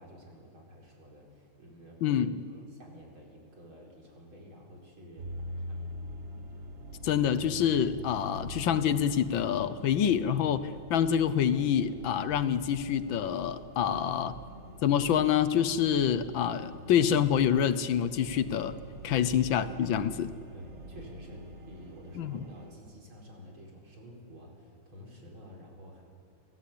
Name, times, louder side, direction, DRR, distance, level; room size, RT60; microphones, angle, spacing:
voice 1, 0.0-2.2 2.5-5.3 5.7-5.8 18.8-19.6 20.5-26.0, equal, 80° right, -1 dB, 5.4 m, -51 dB
voice 2, 2.0-2.4 7.0-14.4 14.8-18.8 19.0-20.3 22.1-22.4, left 9 dB, 75° left, 13 dB, 1.6 m, -27 dB
sound 1, 5.2-22.7, equal, 35° right, 1.6 m, -44 dB
29.5 x 16.0 x 8.6 m, 2.2 s
omnidirectional pair, 2.2 m